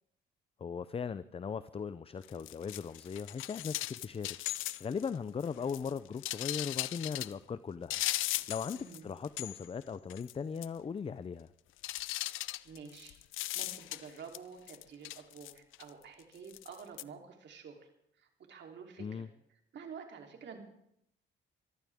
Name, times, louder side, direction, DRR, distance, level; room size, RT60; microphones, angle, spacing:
voice 1, 0.6-4.4 4.8-11.5 19.0-19.3, left 6 dB, 30° left, 14 dB, 0.5 m, -39 dB
sound 1, 2.2-5.1 5.4-7.3 7.9-9.0 9.2-9.8 10.1-10.3 10.6-10.7 11.8-14.4 14.7-15.9 16.5-17.0, left 16 dB, 85° left, 0.5 m, -38 dB
voice 2, 8.7-9.1 12.3-17.9 18.2-19.3 19.7-20.6, right 6 dB, 65° right, 2 dB, 3.4 m, -50 dB
24.0 x 14.5 x 3.6 m, 0.75 s
cardioid pair, 90°, 20 cm